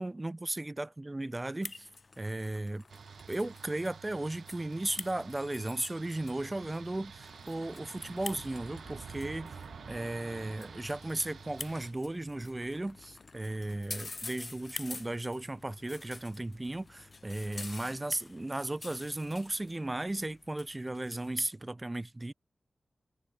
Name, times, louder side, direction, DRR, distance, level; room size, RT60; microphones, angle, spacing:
voice 1, 0.0-1.9 2.2-2.8 3.3-22.3, right 2 dB, 25° right, 0.7 m, -36 dB
sound 1, 1.6-21.5, left 3 dB, 45° left, 0.4 m, -48 dB
sound 2, 2.9-11.9, right 6 dB, 90° right, 0.5 m, -49 dB
sound 3, 8.2-21.0, left 5 dB, 75° left, 2.4 m, -60 dB
cardioid pair, 65°, 0 cm